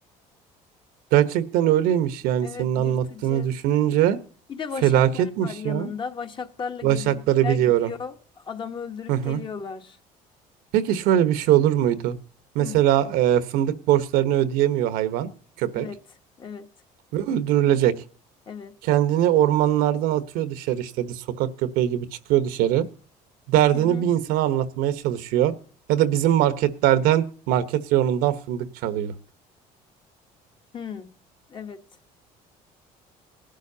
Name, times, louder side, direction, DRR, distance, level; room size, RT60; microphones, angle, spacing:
voice 1, 1.1-4.2 4.8-5.9 6.8-7.9 9.1-9.4 10.7-12.2 12.5-15.3 15.6-15.9 17.1-17.9 18.8-22.9 23.5-25.5 25.9-29.1, right 11 dB, 85° right, 1.2 m, -21 dB
voice 2, 2.4-3.5 4.5-10.0 12.6-12.8 15.7-16.0 16.4-16.7 18.5-18.8 23.7-24.1 30.7-31.1 31.5-31.8, left 6 dB, 35° left, 1.3 m, -36 dB
18.5 x 11.5 x 2.8 m
cardioid pair, 130°, 15 cm